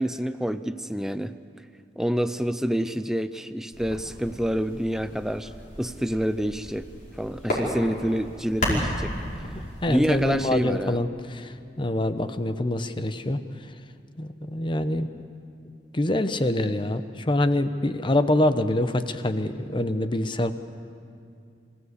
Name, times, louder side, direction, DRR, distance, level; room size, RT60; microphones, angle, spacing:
voice 1, 0.0-1.3 2.0-5.5 5.8-6.8 7.2-9.1 9.9-11.0, equal, 5° right, 11 dB, 0.5 m, -27 dB
sound 1, 3.7-10.4, equal, 50° left, 5.0 m, -33 dB
voice 2, 9.8-13.4 14.2-15.1 15.9-20.5, left 1 dB, 30° left, 10 dB, 0.8 m, -25 dB
25.5 x 16.0 x 8.2 m, 2.4 s
head